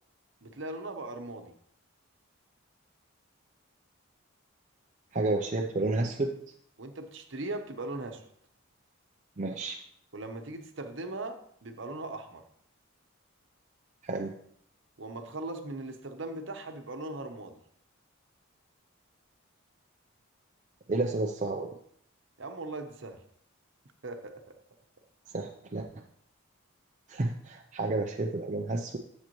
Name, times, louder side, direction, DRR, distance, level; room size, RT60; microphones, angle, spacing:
voice 1, 0.4-1.5 6.8-8.2 10.1-12.4 15.0-17.6 22.4-23.2 24.0-24.4, right 2 dB, 60° right, 6 dB, 0.9 m, -39 dB
voice 2, 5.1-6.3 9.4-9.8 14.0-14.3 20.9-21.8 25.3-26.0 27.1-29.0, right 2 dB, 35° right, 2 dB, 0.5 m, -31 dB
10.5 x 7.5 x 3.0 m, 0.65 s
head